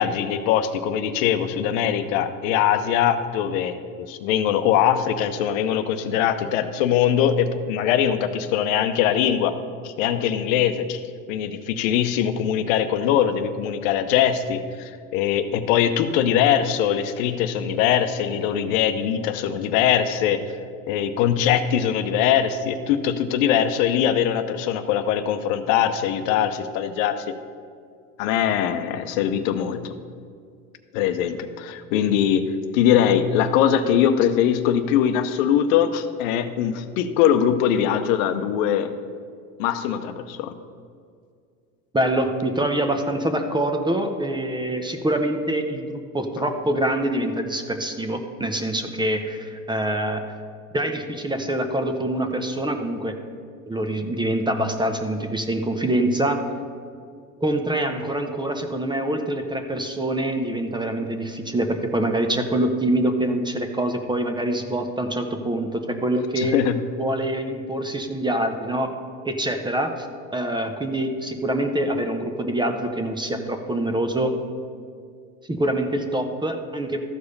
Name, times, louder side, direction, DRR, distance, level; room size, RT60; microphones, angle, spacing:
voice 1, 0.0-9.5 9.8-11.0 11.3-20.5 20.9-27.2 28.2-29.9 30.9-32.4 32.7-38.9 39.6-40.5 66.4-66.8, left 9 dB, 70° left, 9 dB, 0.8 m, -22 dB
voice 2, 41.9-50.2 50.7-53.1 53.7-56.4 57.4-66.6 67.0-68.9 69.2-70.1 70.3-74.4 75.5-77.0, right 1 dB, 10° right, 6 dB, 0.8 m, -25 dB
13.5 x 4.8 x 5.3 m, 2.2 s
hypercardioid pair, 95°, 41 cm